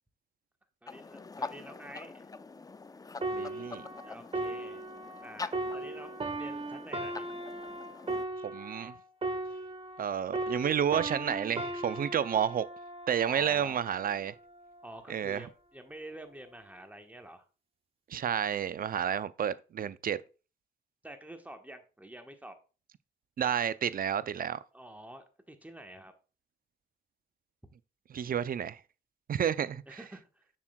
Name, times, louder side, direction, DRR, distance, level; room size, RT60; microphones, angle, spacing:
voice 1, 0.8-2.3 4.0-4.8 5.2-7.3 13.2-13.8 14.8-17.5 21.0-22.5 24.7-26.1 29.9-30.5, right 1 dB, 10° right, 1.2 m, -48 dB
sound 1, 0.9-8.2, left 4 dB, 20° left, 0.4 m, -45 dB
sound 2, 3.2-10.1 10.3-13.9 14.6-14.8, right 2 dB, 30° right, 1.1 m, -37 dB
voice 2, 3.3-3.9 8.5-8.9 10.0-12.7 13.1-14.3 15.1-15.4 18.1-20.2 23.4-24.6 28.1-28.8 29.3-29.8, right 8 dB, 50° right, 0.4 m, -30 dB
7.4 x 6.1 x 2.3 m
cardioid pair, 60°, 19 cm